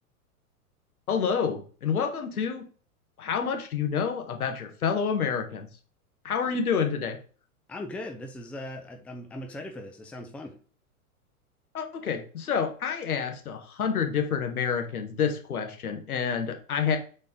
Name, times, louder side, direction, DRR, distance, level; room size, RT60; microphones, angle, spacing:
voice 1, 1.1-2.6 3.2-5.7 6.2-7.2 11.7-17.0, left 6 dB, 75° left, 5 dB, 1.5 m, -28 dB
voice 2, 7.7-10.6, left 1 dB, 5° left, 2 dB, 0.6 m, -39 dB
6.7 x 4.0 x 3.8 m, 0.40 s
figure-of-eight pair, 100°, 45 cm